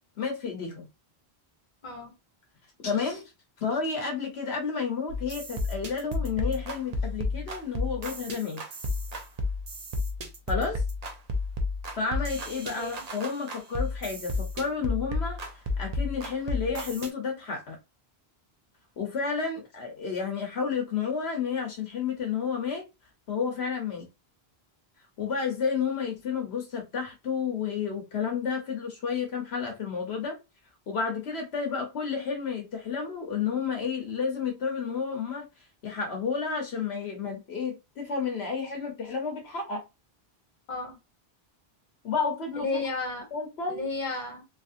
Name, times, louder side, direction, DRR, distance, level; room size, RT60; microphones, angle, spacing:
voice 1, 0.2-0.9 2.8-3.2 3.6-8.6 10.5-10.8 11.9-15.4 15.8-17.8 19.0-22.9 23.3-24.0 25.2-30.4 30.9-35.5 35.8-39.8 42.0-42.7 43.3-43.8, left 5 dB, 80° left, 1.1 m, -31 dB
voice 2, 1.8-2.1 12.8-13.0 40.7-41.0 42.6-43.3 43.7-44.4, left 3 dB, 45° left, 1.3 m, -33 dB
sound 1, 5.1-17.1, left 2 dB, 45° right, 0.7 m, -32 dB
3.0 x 2.6 x 2.5 m
omnidirectional pair, 1.1 m